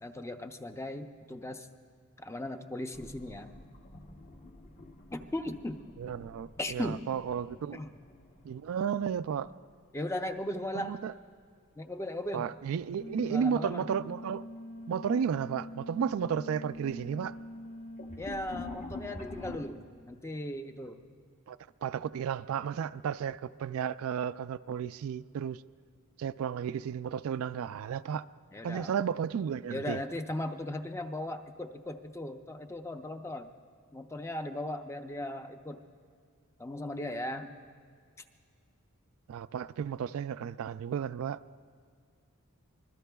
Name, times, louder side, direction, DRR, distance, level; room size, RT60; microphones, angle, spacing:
voice 1, 0.0-1.7 2.2-3.5 5.1-5.8 6.6-7.0 7.7-8.0 9.9-11.0 11.8-12.5 13.3-13.9 18.2-21.0 28.5-28.9 29.7-33.5 33.9-35.8 36.6-37.6, left 1 dB, 10° left, 0.5 m, -37 dB
sound 1, 2.9-9.8 10.0-10.9 12.6-12.9 13.5-13.6 14.6-14.7 15.0-15.5 15.9-19.6, left 2 dB, 35° left, 0.9 m, -48 dB
voice 2, 6.0-7.8 8.4-9.5 10.8-11.1 12.3-14.4 14.9-17.4 21.5-25.6 26.2-28.2 28.6-30.0 39.3-41.4, right 7 dB, 65° right, 0.3 m, -33 dB
sound 2, 13.0-18.2, left 1 dB, 90° left, 1.9 m, -44 dB
25.0 x 21.0 x 2.3 m
head